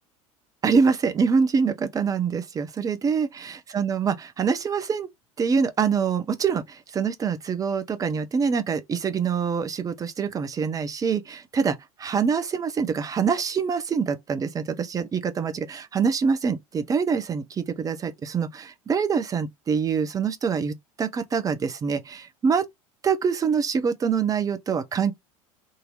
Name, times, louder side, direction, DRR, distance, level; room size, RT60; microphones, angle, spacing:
voice 1, 0.6-5.1 5.4-22.6 23.0-25.2, right 6 dB, 20° right, 0.6 m, -25 dB
3.8 x 2.7 x 3.8 m
figure-of-eight pair, 75°, 18 cm